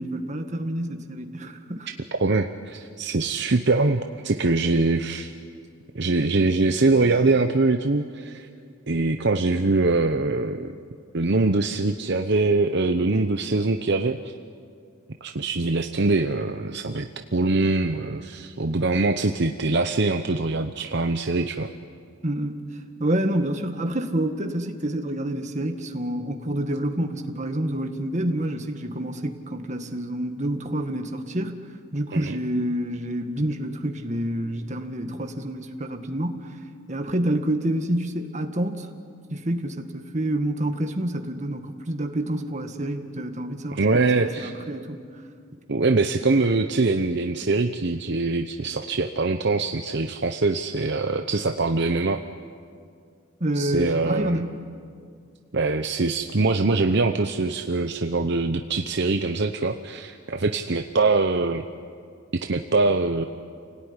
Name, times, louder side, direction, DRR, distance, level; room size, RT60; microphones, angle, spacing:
voice 1, 0.0-1.9 22.2-22.6 23.0-36.5 36.9-38.9 39.3-45.0 53.4-54.6, right 1 dB, 35° right, 5 dB, 1.8 m, -28 dB
voice 2, 2.2-5.3 5.9-8.5 8.9-10.8 11.1-14.3 15.2-21.7 32.1-32.4 43.7-44.5 45.7-52.2 53.5-54.4 55.5-61.6 62.4-63.3, right 3 dB, 55° right, 6 dB, 0.9 m, -23 dB
29.0 x 18.0 x 9.9 m, 2.2 s
head